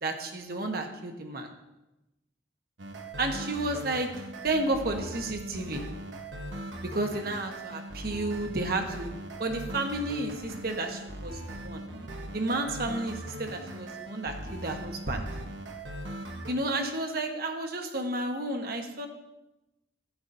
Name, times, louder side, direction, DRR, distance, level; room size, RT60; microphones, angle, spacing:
voice 1, 0.0-1.5 3.2-6.0 6.8-11.8 12.3-15.3 16.5-19.1, right 2 dB, 55° right, 4 dB, 1.1 m, -32 dB
sound 1, 2.8-16.5, right 1 dB, 90° right, 1.1 m, -40 dB
12.5 x 9.9 x 2.7 m, 0.95 s
head